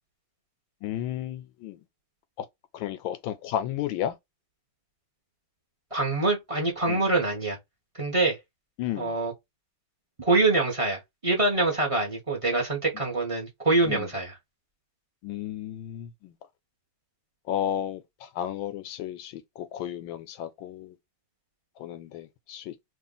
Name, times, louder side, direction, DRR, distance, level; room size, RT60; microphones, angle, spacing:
voice 1, 0.8-1.8 2.4-2.5 2.7-4.2 6.9-7.0 8.8-9.2 13.8-14.1 15.2-16.3 17.5-21.0 21.8-22.7, left 11 dB, 90° left, 1.4 m, -33 dB
voice 2, 5.9-7.6 8.0-8.4 9.0-9.3 10.2-14.3, right 2 dB, 25° right, 0.8 m, -25 dB
3.0 x 2.5 x 3.9 m
omnidirectional pair, 2.1 m